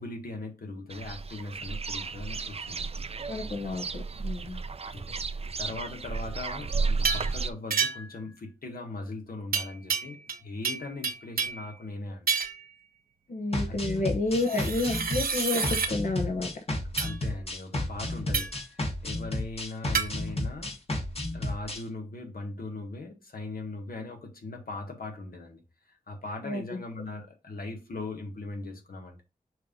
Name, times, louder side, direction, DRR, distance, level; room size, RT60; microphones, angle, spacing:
voice 1, 0.0-3.0 3.6-3.8 4.9-5.1 5.6-12.3 13.7-14.0 14.5-14.6 17.0-20.8 21.3-25.6 26.1-29.2, left 2 dB, 85° left, 1.5 m, -39 dB
sound 1, 0.9-7.5, right 4 dB, 45° right, 0.4 m, -33 dB
voice 2, 3.3-4.6 13.3-16.5 26.4-26.8, left 2 dB, 60° left, 1.0 m, -30 dB
sound 2, 7.0-7.3 7.7-8.2 9.5-10.4 10.6-11.7 12.3-12.7 14.4-15.9 17.0-17.2 18.3-18.6 19.9-20.1, right 5 dB, 80° right, 0.8 m, -29 dB
sound 3, 13.5-21.8, left 1 dB, 40° left, 1.5 m, -32 dB
6.4 x 2.8 x 5.3 m
wide cardioid pair, 80°, 15 cm